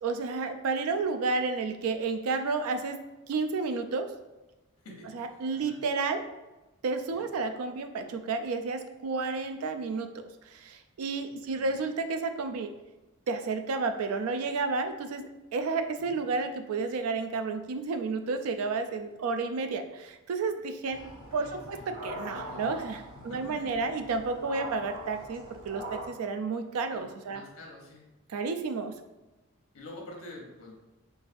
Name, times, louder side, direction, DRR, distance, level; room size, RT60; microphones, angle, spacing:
voice 1, 0.0-3.0 3.3-4.1 5.1-6.2 6.8-10.1 10.4-12.7 13.3-21.0 21.3-27.4 28.3-29.0, right 4 dB, 85° right, 7 dB, 0.4 m, -31 dB
voice 2, 4.8-5.2 5.5-5.8 7.1-7.3 11.5-11.8 16.0-16.2 21.3-21.8 22.3-22.7 23.2-23.9 26.9-28.1 29.7-30.7, left 2 dB, 90° left, -2 dB, 0.9 m, -47 dB
sound 1, 20.9-26.1, right 1 dB, 25° right, 1.1 m, -42 dB
3.9 x 2.4 x 2.5 m, 1.1 s
head